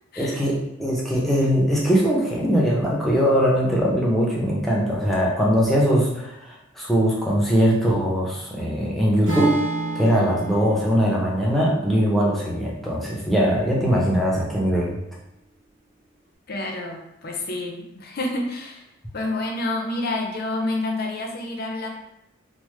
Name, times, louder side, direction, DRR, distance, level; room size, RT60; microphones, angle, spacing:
voice 1, 0.2-9.5 9.9-15.0, equal, ahead, -5 dB, 0.5 m, -21 dB
Acoustic guitar / Strum, 9.3-13.5, right 3 dB, 60° right, 1.2 m, -31 dB
voice 2, 16.5-18.8 19.1-21.9, left 2 dB, 45° left, 1 dB, 0.5 m, -28 dB
3.2 x 2.0 x 3.1 m, 0.87 s
head